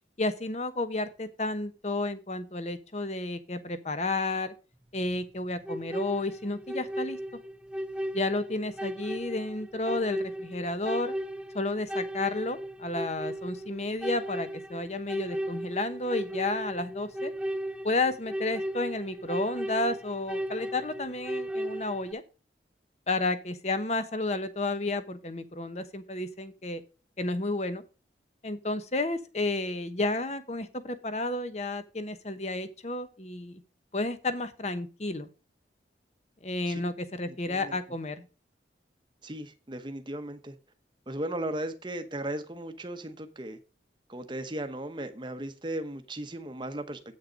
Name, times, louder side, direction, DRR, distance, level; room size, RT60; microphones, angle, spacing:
voice 1, 0.2-4.5 4.9-7.2 8.1-11.1 11.5-17.3 17.8-22.2 23.1-26.8 27.2-27.8 28.4-33.6 33.9-35.3 36.4-38.3, left 2 dB, 35° left, 1.0 m, -31 dB
sound 1, 5.6-22.1, equal, 5° right, 0.4 m, -36 dB
voice 2, 37.3-37.8 39.2-40.5 41.1-43.6 44.1-47.2, right 1 dB, 25° right, 1.0 m, -36 dB
8.5 x 6.6 x 5.1 m
head